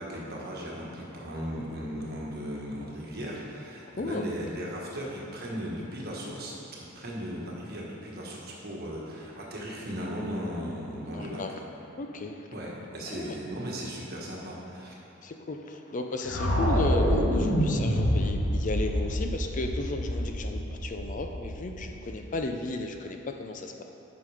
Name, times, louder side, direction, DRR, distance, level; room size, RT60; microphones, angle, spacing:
voice 1, 0.0-11.4 12.5-14.9, equal, 50° right, -3 dB, 1.5 m, -37 dB
voice 2, 11.1-11.5 12.0-12.5 13.1-13.3 15.2-23.8, left 2 dB, 40° left, 4 dB, 0.5 m, -34 dB
sound 1, 16.2-22.3, equal, 65° left, 1.4 m, -27 dB
8.4 x 5.9 x 4.9 m, 2.9 s
head